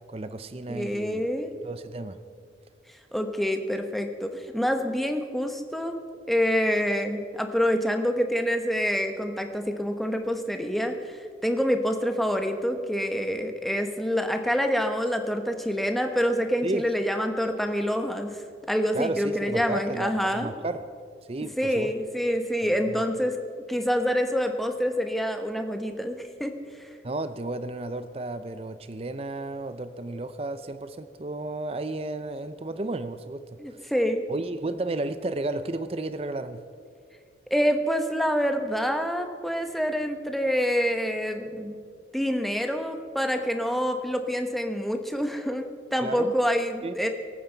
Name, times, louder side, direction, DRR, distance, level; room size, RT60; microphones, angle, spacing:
voice 1, 0.1-1.2 1.6-2.2 16.6-16.8 18.9-20.9 21.3-21.9 22.6-23.0 27.0-33.9 34.3-36.6 46.0-46.3 46.8-46.9, right 2 dB, 35° right, 11 dB, 0.5 m, -33 dB
voice 2, 0.7-1.6 3.1-6.0 6.3-18.3 18.7-20.5 21.6-23.4 23.7-26.9 33.6-34.2 37.5-41.8 42.1-47.1, equal, ahead, 5 dB, 0.8 m, -27 dB
23.5 x 9.2 x 4.5 m, 2.2 s
head